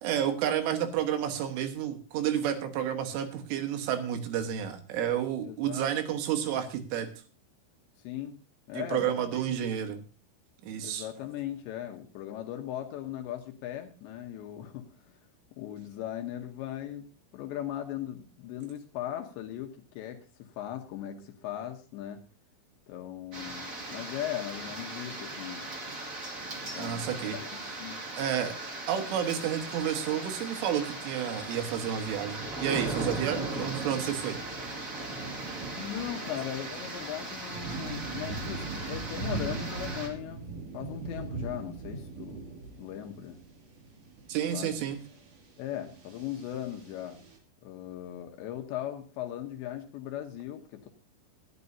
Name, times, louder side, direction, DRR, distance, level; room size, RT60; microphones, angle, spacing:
voice 1, 0.0-7.1 8.7-10.0 10.6-11.1 26.8-27.4 28.2-28.5 28.9-34.4 44.3-45.0, right 9 dB, 75° right, 7 dB, 3.7 m, -30 dB
voice 2, 5.4-5.9 8.0-8.4 8.7-9.4 10.8-15.2 15.5-17.1 17.3-22.2 22.9-25.7 26.6-27.5 27.8-28.0 35.8-40.4 40.7-42.5 42.8-43.4 44.5-44.7 45.6-47.2 47.6-50.9, left 11 dB, 75° left, 4 dB, 3.0 m, -38 dB
sound 1, 23.3-40.1, right 2 dB, 60° right, 0.8 m, -38 dB
sound 2, 32.4-47.4, right 3 dB, 40° right, 2.7 m, -42 dB
19.0 x 12.0 x 2.8 m, 0.34 s
omnidirectional pair, 5.9 m